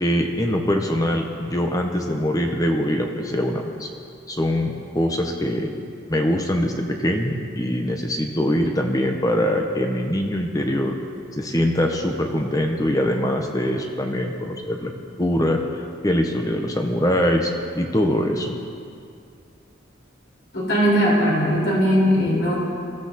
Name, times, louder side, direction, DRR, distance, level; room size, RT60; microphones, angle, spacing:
voice 1, 0.0-3.9 4.3-5.7 6.1-11.0 11.3-14.9 15.2-15.6 16.0-18.6, equal, 20° left, 3 dB, 1.0 m, -23 dB
voice 2, 20.5-22.5, equal, 60° left, -3 dB, 4.8 m, -19 dB
22.5 x 14.5 x 4.2 m, 2.4 s
head